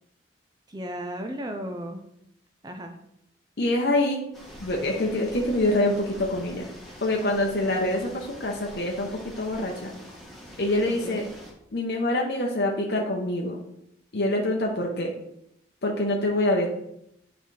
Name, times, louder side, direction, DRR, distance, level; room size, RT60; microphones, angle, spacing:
voice 1, 0.7-2.0 2.6-3.0 10.9-11.3, equal, 20° right, 5 dB, 0.5 m, -35 dB
voice 2, 3.6-4.2 4.6-6.7 7.0-9.9 10.6-11.2 11.7-13.6 14.1-15.1 15.8-16.7, left 1 dB, 60° left, -1 dB, 0.8 m, -25 dB
sound 1, 4.3-11.5, equal, ahead, 1.3 m, -45 dB
8.9 x 3.9 x 3.3 m, 0.77 s
head